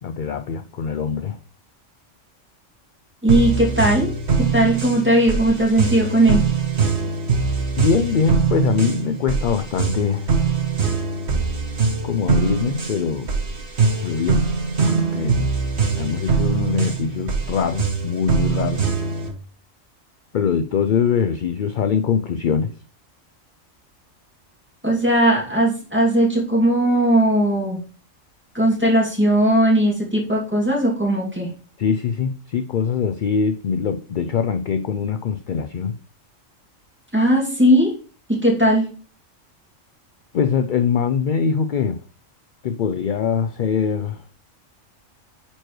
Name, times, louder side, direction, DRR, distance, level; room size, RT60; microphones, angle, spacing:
voice 1, 0.0-1.4 7.8-10.4 12.0-13.3 14.0-14.4 14.9-15.4 16.0-19.0 20.3-22.7 31.8-36.0 40.3-42.0 42.6-44.4, left 6 dB, 60° left, 8 dB, 0.5 m, -23 dB
voice 2, 3.2-4.1 4.4-6.4 24.8-27.8 28.5-31.5 37.1-37.9 38.3-38.9, right 1 dB, 10° right, -3 dB, 2.4 m, -18 dB
sound 1, 3.3-19.3, right 5 dB, 55° right, 1.4 m, -22 dB
8.9 x 4.5 x 3.1 m, 0.38 s
omnidirectional pair, 1.3 m